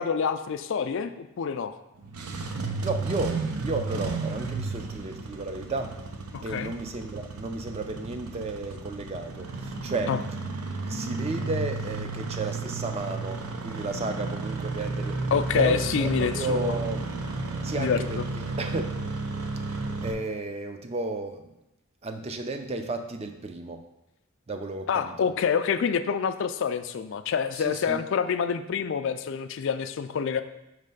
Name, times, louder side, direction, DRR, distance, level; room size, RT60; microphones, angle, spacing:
voice 1, 0.0-1.8 6.3-6.7 10.1-10.2 15.3-16.7 17.8-18.0 24.9-30.4, left 6 dB, 55° left, 10 dB, 0.3 m, -27 dB
Engine starting, 2.0-20.1, right 3 dB, 85° right, 0.6 m, -33 dB
voice 2, 2.8-5.9 6.4-10.1 10.9-15.2 15.5-17.2 17.6-18.9 20.0-21.5 22.0-23.8 24.5-25.3 27.6-28.0, right 3 dB, 25° right, 6 dB, 0.4 m, -33 dB
5.5 x 3.2 x 5.2 m, 0.90 s
head